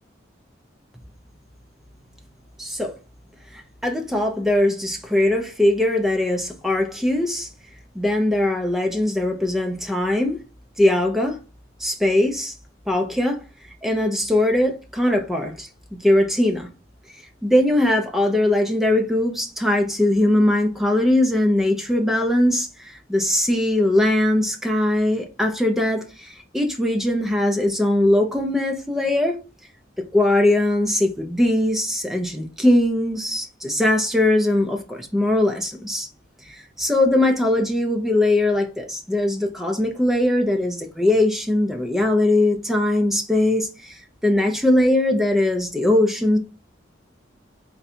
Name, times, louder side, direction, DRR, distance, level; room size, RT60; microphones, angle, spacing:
voice 1, 2.6-2.9 3.8-7.5 7.9-10.4 10.8-11.4 11.8-12.5 12.9-13.4 13.8-16.7 17.4-29.4 30.1-36.1 36.8-46.4, left 1 dB, ahead, 0.6 m, -20 dB
3.9 x 2.3 x 4.3 m
head